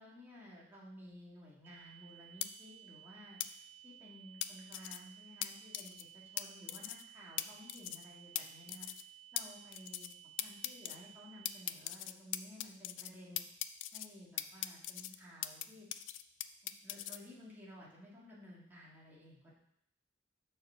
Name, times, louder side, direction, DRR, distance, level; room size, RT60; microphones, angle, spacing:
voice 1, 0.0-3.4 3.8-8.9 9.3-10.1 10.4-13.4 13.9-15.9 16.6-19.5, equal, 10° right, -6 dB, 1.7 m, -54 dB
sound 1, 1.6-11.6, right 11 dB, 85° right, 0.4 m, -57 dB
sound 2, 2.4-2.5 3.4-3.5 4.4-5.0 5.4-5.5 5.7-6.0 6.4-6.5 6.7-7.0 7.4-7.5 7.7-8.0 8.4-8.5 8.7-9.0 9.4-9.5 9.7-10.1 10.4-11.0 11.4-13.1 13.4-14.1 14.4-15.6 15.9-17.2, left 14 dB, 75° left, 0.4 m, -39 dB
6.9 x 4.3 x 5.5 m, 0.75 s
head